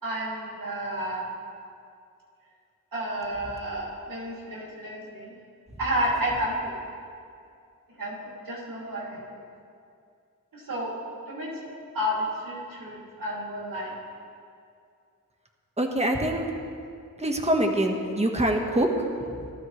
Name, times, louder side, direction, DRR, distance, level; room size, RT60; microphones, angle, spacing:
voice 1, 0.0-1.3 2.9-5.3 5.8-6.7 8.0-8.2 8.5-9.4 10.5-10.9 11.3-11.5 11.9-13.9, equal, 90° right, -5 dB, 2.9 m, -31 dB
voice 2, 15.8-16.5 17.2-19.5, right 1 dB, 20° right, 2 dB, 1.4 m, -25 dB
18.0 x 12.5 x 3.2 m, 2.3 s
cardioid pair, 60°, 33 cm